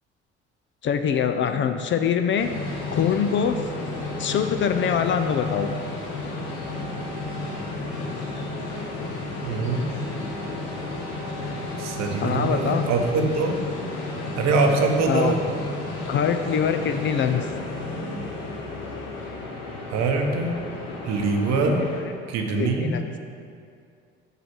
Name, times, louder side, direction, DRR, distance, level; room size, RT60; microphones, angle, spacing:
voice 1, 0.8-2.5 2.9-3.6 4.2-5.7 12.2-12.9 15.1-15.4 16.1-17.5 21.7-21.9 22.6-23.0, left 7 dB, 35° left, 7 dB, 0.4 m, -24 dB
sound 1, 2.4-22.0, left 2 dB, 70° left, 1.1 m, -32 dB
voice 2, 9.4-10.0 11.8-13.6 14.4-15.4 19.9-20.6 21.0-21.8 22.3-23.0, right 3 dB, 55° right, 3 dB, 0.9 m, -23 dB
6.8 x 3.2 x 6.0 m, 2.3 s
hypercardioid pair, 55°, 32 cm